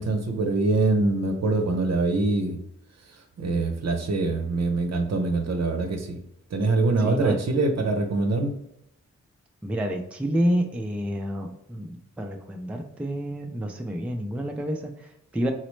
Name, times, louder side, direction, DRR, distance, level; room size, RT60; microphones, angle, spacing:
voice 1, 0.0-2.6 3.4-6.2 6.5-8.5, right 3 dB, 65° right, 4 dB, 0.6 m, -24 dB
voice 2, 7.0-7.4 9.6-15.5, equal, 5° right, 3 dB, 0.3 m, -29 dB
4.0 x 2.0 x 3.1 m, 0.78 s
wide cardioid pair, 100°, 29 cm